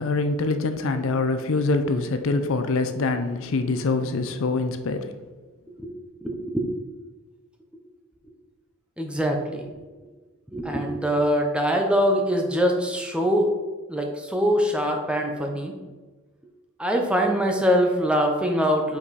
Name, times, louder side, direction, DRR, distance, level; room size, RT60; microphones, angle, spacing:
voice 1, 0.0-5.1, left 3 dB, 65° left, 9 dB, 0.5 m, -24 dB
voice 2, 6.2-6.7 9.0-9.6 10.5-13.5 13.9-15.7 16.8-19.0, equal, 5° right, 2 dB, 0.7 m, -23 dB
5.8 x 4.8 x 4.1 m, 1.3 s
head